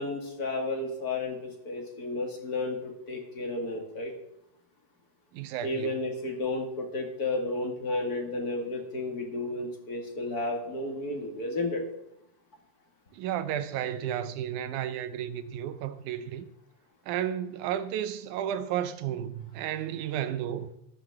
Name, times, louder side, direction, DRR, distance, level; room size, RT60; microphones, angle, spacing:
voice 1, 0.0-4.1 5.6-11.8, left 2 dB, 35° left, 1.7 m, -32 dB
voice 2, 5.3-5.9 13.1-16.5 17.1-20.7, right 10 dB, 80° right, 1.8 m, -32 dB
13.5 x 13.0 x 3.6 m
omnidirectional pair, 4.2 m